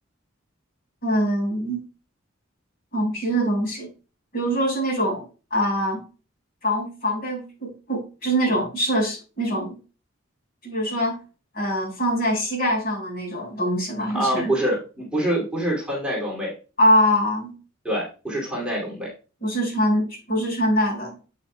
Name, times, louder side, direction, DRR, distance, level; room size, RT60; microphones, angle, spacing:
voice 1, 1.0-1.8 2.9-3.9 4.3-5.2 5.5-6.0 6.6-9.8 10.6-11.2 11.5-14.5 16.8-17.5 19.4-21.2, equal, 50° left, 0 dB, 4.9 m, -23 dB
voice 2, 14.1-16.5 17.8-19.1, right 1 dB, 5° right, -4 dB, 2.5 m, -25 dB
8.8 x 8.3 x 2.2 m, 0.34 s
head